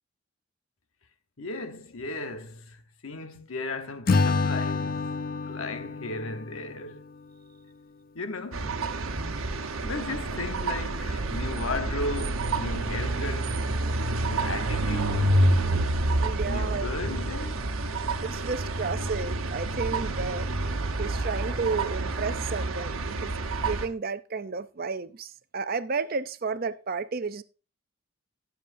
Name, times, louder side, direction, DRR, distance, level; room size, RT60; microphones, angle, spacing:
voice 1, 1.4-5.2 5.5-7.0 8.1-8.8 9.3-13.6 14.2-15.4 16.2-17.7, left 2 dB, 85° left, 1.1 m, -36 dB
Acoustic guitar / Strum, 4.1-7.3, left 4 dB, 45° left, 0.5 m, -28 dB
sound 1, 8.5-23.9, right 2 dB, 80° right, 1.1 m, -28 dB
voice 2, 16.2-16.9 18.2-20.5 21.0-23.4 23.6-27.4, right 4 dB, 45° right, 0.5 m, -32 dB
17.5 x 7.2 x 2.6 m
head